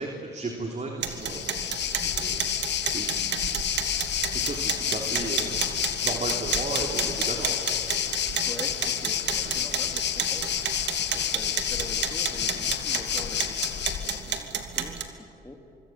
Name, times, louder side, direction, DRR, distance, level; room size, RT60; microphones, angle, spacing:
voice 1, 0.0-3.6 4.3-5.7 6.0-7.7, right 3 dB, 35° right, 1 dB, 3.4 m, -35 dB
sound 1, 1.0-15.0, right 7 dB, 65° right, 2.6 m, -32 dB
Waves surf, 1.1-14.4, left 10 dB, 60° left, 1.2 m, -30 dB
voice 2, 8.4-13.6 14.0-15.6, left 2 dB, 15° left, 4 dB, 2.9 m, -44 dB
24.5 x 24.5 x 7.5 m, 2.9 s
cardioid pair, 90°, 20 cm